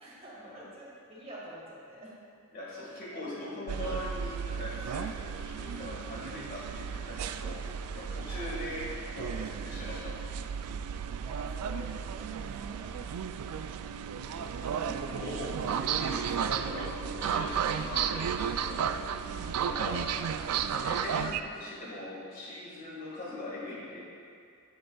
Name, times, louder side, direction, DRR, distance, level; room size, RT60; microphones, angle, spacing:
voice 1, 0.0-2.1 8.3-8.5 11.2-13.8 19.4-19.7, right 1 dB, 30° right, -6 dB, 2.0 m, -48 dB
voice 2, 2.5-10.4 14.4-19.0 19.6-20.1 20.7-24.0, left 1 dB, 40° left, -7 dB, 1.9 m, -41 dB
sound 1, 3.7-21.4, right 7 dB, 90° right, 0.3 m, -34 dB
11.0 x 7.8 x 2.3 m, 2.3 s
head